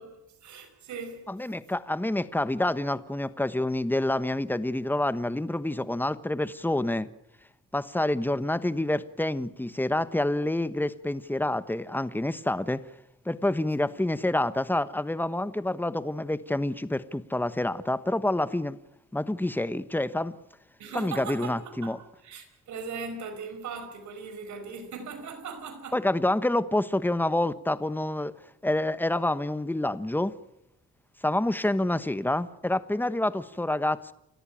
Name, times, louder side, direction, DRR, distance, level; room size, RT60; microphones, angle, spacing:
voice 1, 0.0-1.3 20.8-26.0 31.7-31.8, right 5 dB, 70° right, 5.2 m, -39 dB
voice 2, 1.3-7.1 7.7-12.8 13.2-18.8 19.1-20.3 20.9-22.0 25.9-28.3 28.6-30.4 31.2-34.1, left 1 dB, 5° left, 1.2 m, -27 dB
29.0 x 13.5 x 9.0 m
cardioid pair, 90°, 30 cm